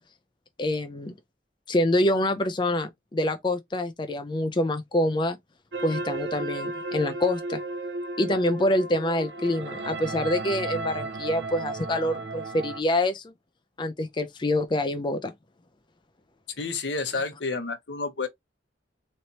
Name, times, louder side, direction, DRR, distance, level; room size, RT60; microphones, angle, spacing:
voice 1, 0.6-1.1 1.7-5.4 5.8-7.6 8.2-13.3 13.8-15.3, left 1 dB, 25° left, 0.5 m, -26 dB
sound 1, 5.7-12.8, right 3 dB, 75° right, 0.8 m, -34 dB
voice 2, 16.6-18.3, left 4 dB, 75° left, 0.9 m, -30 dB
4.0 x 3.2 x 2.9 m
head